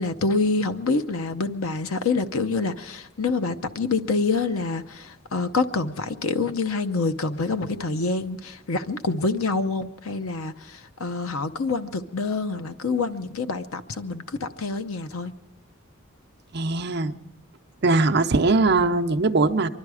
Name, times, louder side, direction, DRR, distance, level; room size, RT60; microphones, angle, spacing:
voice 1, 0.0-15.3, left 3 dB, 85° left, 9 dB, 0.7 m, -26 dB
voice 2, 16.5-17.1 17.8-19.7, right 3 dB, 50° right, 5 dB, 0.6 m, -20 dB
24.0 x 12.0 x 4.8 m, 1.0 s
head